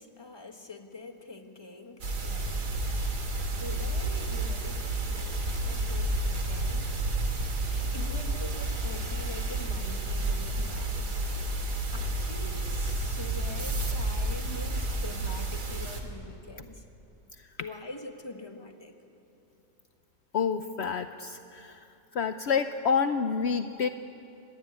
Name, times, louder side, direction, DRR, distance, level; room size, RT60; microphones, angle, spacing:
voice 1, 0.0-2.7 3.5-10.9 11.9-16.9 17.6-19.0, left 3 dB, 15° left, 5 dB, 1.5 m, -45 dB
sound 1, 2.0-16.0, right 2 dB, 60° right, 2.9 m, -31 dB
voice 2, 20.3-21.9 22.1-23.9, left 6 dB, 65° left, 9 dB, 0.6 m, -28 dB
25.5 x 19.5 x 9.5 m, 2.8 s
omnidirectional pair, 1.9 m